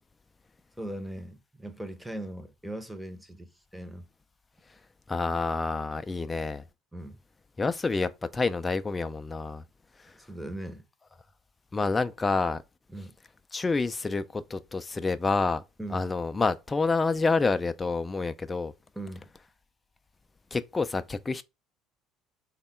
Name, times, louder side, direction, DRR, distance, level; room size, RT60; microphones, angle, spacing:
voice 1, 0.8-4.0 6.9-7.2 10.2-10.8 12.9-13.1 15.8-16.1 18.9-19.3, right 1 dB, 5° right, 0.7 m, -39 dB
voice 2, 5.1-6.6 7.6-9.6 10.0-10.1 11.7-12.6 13.5-15.6 15.9-18.7 20.5-21.4, left 3 dB, 20° left, 0.3 m, -28 dB
3.5 x 2.1 x 4.1 m
figure-of-eight pair, 60°, 0 cm